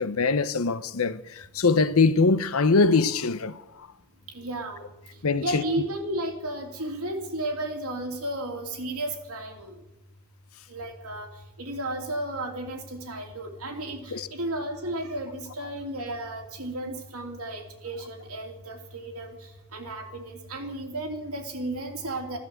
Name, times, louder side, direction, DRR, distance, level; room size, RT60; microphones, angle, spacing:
voice 1, 0.0-3.9 5.2-5.6 14.1-14.3, left 4 dB, 75° left, 0.8 m, -23 dB
voice 2, 4.3-4.8 5.3-9.8 10.7-11.3 11.6-19.4 19.7-22.4, right 1 dB, 80° right, 3.1 m, -33 dB
14.5 x 11.5 x 8.0 m
head